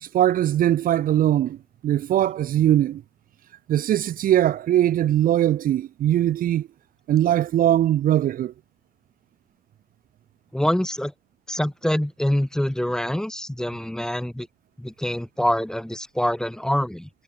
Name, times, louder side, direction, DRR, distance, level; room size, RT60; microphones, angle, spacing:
voice 1, 0.0-1.6 1.8-3.0 3.7-6.7 7.1-8.5, right 12 dB, 55° right, 1.0 m, -21 dB
voice 2, 10.5-11.1 11.5-14.5 14.8-17.1, left 1 dB, 5° left, 1.5 m, -25 dB
cardioid pair, 110°, 17 cm